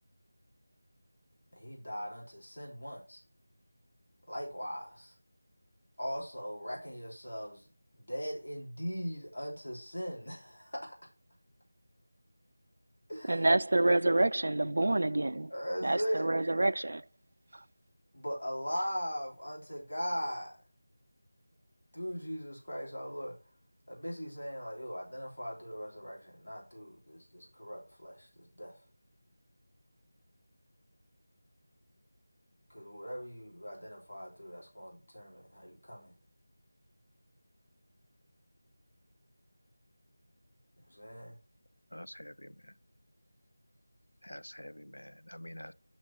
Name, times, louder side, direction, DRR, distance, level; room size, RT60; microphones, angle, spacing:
voice 1, 1.5-3.2 4.3-5.1 6.0-11.0 13.1-13.5 15.5-16.3 18.1-20.6 21.9-23.3 23.9-28.8 32.7-36.1 40.9-41.4, equal, 65° left, 3.0 m, -39 dB
voice 2, 13.3-15.5 15.8-17.0, right 2 dB, 60° right, 0.3 m, -27 dB
voice 3, 41.9-42.5 44.2-45.7, equal, 90° left, 0.4 m, -47 dB
6.0 x 4.3 x 5.8 m
figure-of-eight pair, 170°, 0 cm